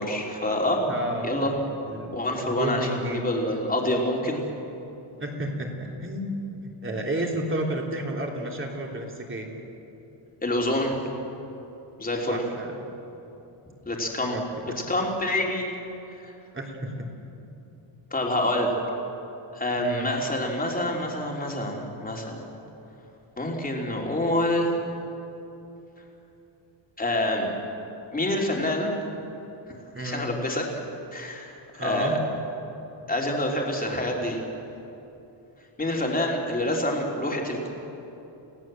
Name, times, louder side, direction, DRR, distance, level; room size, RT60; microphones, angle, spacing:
voice 1, 0.0-0.8 1.2-1.5 2.1-4.4 10.4-11.0 12.0-12.4 13.8-14.4 14.9-15.7 16.2-16.3 18.1-18.8 19.5-22.5 23.4-24.7 27.0-27.5 28.1-28.9 30.0-30.7 31.1-32.2 33.1-34.4 35.8-37.7, left 1 dB, 15° left, 0 dB, 3.2 m, -27 dB
voice 2, 0.8-1.5 1.9-2.1 2.4-3.2 5.2-9.5 12.3-12.9 14.3-14.4 14.7-14.8 16.5-17.1 19.8-20.1 29.9-30.2 31.8-32.2, right 1 dB, 25° right, 0 dB, 3.3 m, -31 dB
30.0 x 17.5 x 7.6 m, 3.0 s
wide cardioid pair, 165°, 50 cm